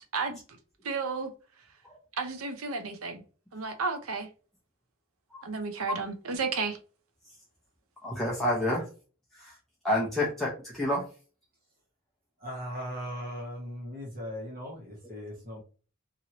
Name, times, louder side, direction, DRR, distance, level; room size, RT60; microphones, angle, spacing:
voice 1, 0.8-1.3 2.2-3.2 3.5-4.3 5.4-6.8, right 4 dB, 85° right, 0.6 m, -32 dB
voice 2, 8.0-8.8 9.4-9.5 9.8-11.0, left 1 dB, ahead, 0.6 m, -28 dB
voice 3, 12.4-15.6, equal, 45° right, 1.1 m, -38 dB
3.0 x 2.6 x 2.8 m
head